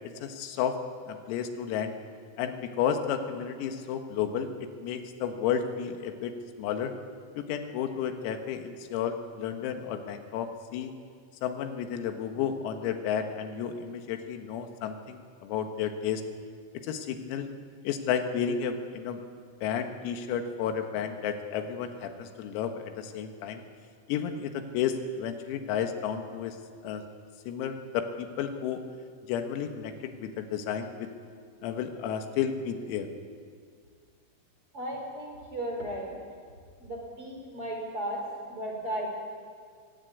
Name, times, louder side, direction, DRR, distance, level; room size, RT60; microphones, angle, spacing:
voice 1, 0.2-0.8 1.1-1.9 2.4-4.5 4.8-6.9 7.4-10.9 11.4-16.2 16.8-17.5 17.8-19.2 19.6-23.6 24.1-26.6 26.8-27.0 27.5-28.8 29.3-31.1 31.6-33.1, left 8 dB, 90° left, 6 dB, 4.3 m, -32 dB
voice 2, 34.7-36.2 36.8-38.2 38.5-39.1, right 1 dB, 30° right, 0 dB, 4.1 m, -35 dB
22.5 x 17.0 x 9.6 m, 2.1 s
omnidirectional pair, 6.0 m